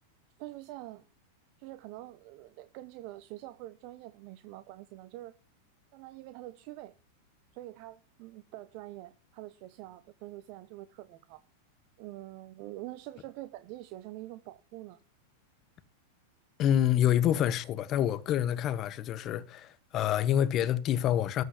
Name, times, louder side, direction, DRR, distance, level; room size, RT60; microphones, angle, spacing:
voice 1, 0.4-1.0 1.6-5.3 5.9-6.9 7.5-11.4 12.0-15.0, right 16 dB, 55° right, 0.9 m, -45 dB
voice 2, 16.6-21.4, left 11 dB, 40° left, 1.2 m, -27 dB
14.0 x 5.7 x 8.0 m
hypercardioid pair, 105°, 0 cm